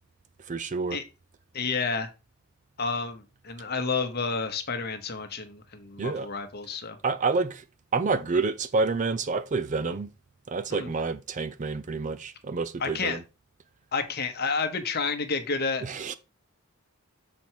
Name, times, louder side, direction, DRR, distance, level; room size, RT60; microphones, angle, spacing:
voice 1, 0.5-1.0 6.0-6.3 7.0-7.6 7.9-10.1 10.5-13.2 15.8-16.1, right 4 dB, 35° right, 0.4 m, -28 dB
voice 2, 1.5-2.1 2.8-7.0 10.7-10.9 12.8-13.2 13.9-15.8, left 4 dB, 45° left, 1.0 m, -30 dB
7.0 x 4.5 x 4.5 m
head